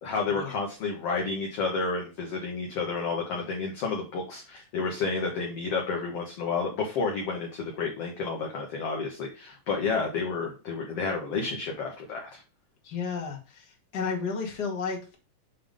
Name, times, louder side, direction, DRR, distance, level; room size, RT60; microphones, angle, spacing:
voice 1, 0.0-12.4, left 4 dB, 55° left, 0 dB, 1.9 m, -30 dB
voice 2, 12.8-13.6 13.9-15.2, left 5 dB, 35° left, 0 dB, 2.1 m, -32 dB
7.4 x 3.7 x 5.1 m, 0.32 s
omnidirectional pair, 4.0 m